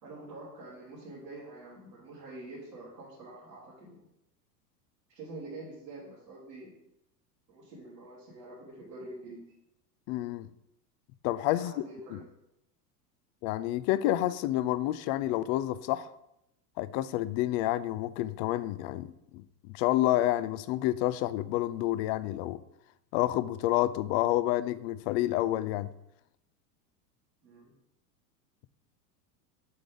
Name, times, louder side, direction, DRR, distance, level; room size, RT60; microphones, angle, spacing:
voice 1, 0.0-4.0 5.1-6.7 7.5-9.4 11.6-12.2 27.4-27.7, right 2 dB, 85° right, -8 dB, 2.9 m, -46 dB
voice 2, 10.1-10.5 11.2-11.7 12.1-12.2 13.4-16.1 16.8-22.6 23.1-25.9, left 15 dB, 45° left, 16 dB, 0.4 m, -29 dB
7.8 x 3.4 x 5.3 m, 0.84 s
hypercardioid pair, 95°, 49 cm